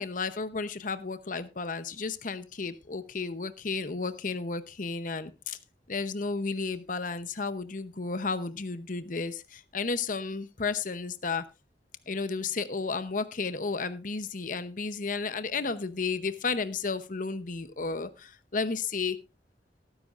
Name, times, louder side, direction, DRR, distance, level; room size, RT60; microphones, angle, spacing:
voice 1, 0.0-5.6 5.9-11.5 12.1-19.2, left 4 dB, 50° left, 0.8 m, -33 dB
18.0 x 9.9 x 2.5 m
head